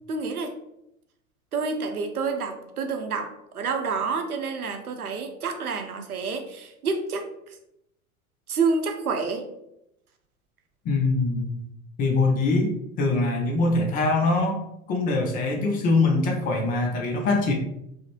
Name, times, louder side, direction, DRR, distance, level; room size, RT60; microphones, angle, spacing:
voice 1, 0.1-0.5 1.5-7.6 8.5-9.5, right 4 dB, 80° right, 5 dB, 0.7 m, -28 dB
voice 2, 10.9-11.6 12.0-14.6 14.9-17.5, left 3 dB, 20° left, 2 dB, 0.4 m, -23 dB
4.8 x 2.1 x 3.0 m, 0.81 s
figure-of-eight pair, 80°, 43 cm